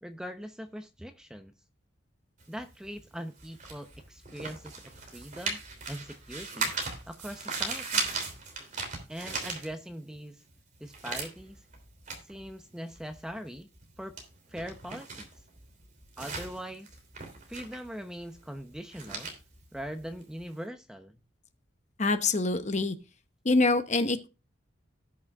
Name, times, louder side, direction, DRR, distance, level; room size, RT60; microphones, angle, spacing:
voice 1, 0.0-1.5 2.5-5.6 5.9-6.7 7.1-8.1 9.1-10.4 10.8-11.6 12.2-13.7 14.0-14.2 14.5-15.3 16.2-16.9 17.5-19.3 19.7-21.2, equal, 5° right, 7 dB, 0.7 m, -41 dB
sound 1, 2.4-10.2 10.5-20.6, right 4 dB, 40° right, 3.0 m, -38 dB
voice 2, 22.0-22.9 23.4-24.3, left 3 dB, 35° left, 9 dB, 0.9 m, -25 dB
18.0 x 6.2 x 2.4 m, 0.29 s
head